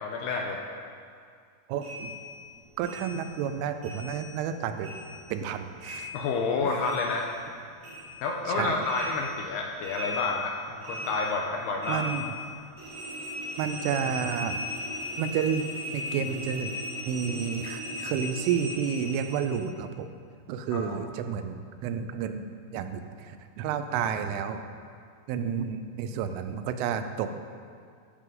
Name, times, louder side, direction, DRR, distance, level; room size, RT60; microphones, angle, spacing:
voice 1, 0.0-0.6 6.1-7.3 8.2-12.1 20.7-21.0, left 3 dB, 80° left, 1 dB, 2.4 m, -29 dB
voice 2, 1.7-2.1 2.8-4.9 5.3-6.1 8.5-8.8 11.9-12.3 13.6-14.6 15.2-16.7 17.1-20.1 20.5-22.4 22.7-23.0 23.6-24.6 25.3-27.3, right 7 dB, 90° right, 8 dB, 3.2 m, -30 dB
sound 1, 1.8-4.5 4.8-7.5 7.8-19.6, left 2 dB, 50° right, 4.7 m, -38 dB
13.5 x 12.5 x 3.9 m, 2.2 s
omnidirectional pair, 5.5 m